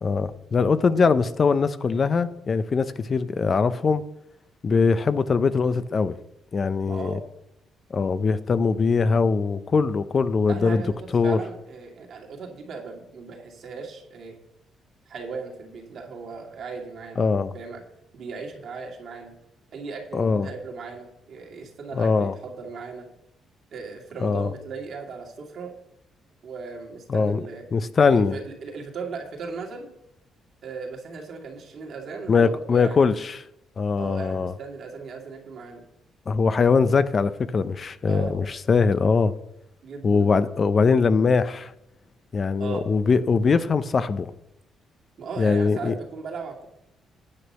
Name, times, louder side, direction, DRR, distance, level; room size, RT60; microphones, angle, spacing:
voice 1, 0.0-4.0 4.6-6.2 6.5-7.2 7.9-10.8 11.1-11.4 17.2-17.5 20.1-20.5 21.9-22.3 24.2-24.5 27.1-27.4 27.7-28.3 32.3-33.4 33.8-34.5 36.3-39.3 40.0-41.7 42.3-44.3 45.4-45.9, left 5 dB, 40° left, 13 dB, 0.5 m, -21 dB
voice 2, 6.8-7.2 10.5-14.4 15.1-17.3 17.5-17.8 18.1-19.3 19.7-23.1 23.7-25.7 26.4-27.6 28.0-29.9 30.6-33.0 34.0-35.8 38.1-38.4 39.8-40.3 42.6-42.8 45.2-46.7, right 4 dB, 65° right, 0 dB, 2.4 m, -37 dB
9.7 x 6.1 x 5.6 m, 0.81 s
cardioid pair, 90°, 0 cm